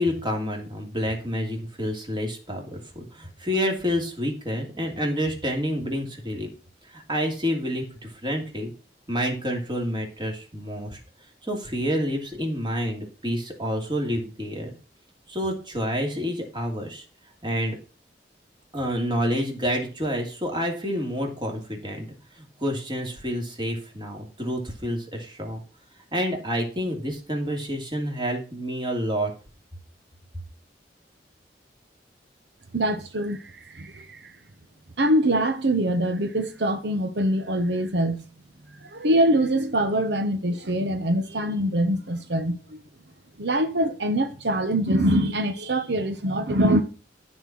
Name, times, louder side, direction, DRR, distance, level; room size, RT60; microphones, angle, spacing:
voice 1, 0.0-6.5 6.9-8.7 9.1-11.0 11.4-14.7 15.3-17.0 17.4-17.8 18.7-22.0 22.4-25.6 26.1-29.3, equal, 25° right, 2.6 m, -28 dB
voice 2, 32.7-34.3 35.0-38.2 38.8-42.6 43.4-46.8, right 1 dB, 80° right, 1.2 m, -24 dB
13.5 x 4.5 x 6.0 m
head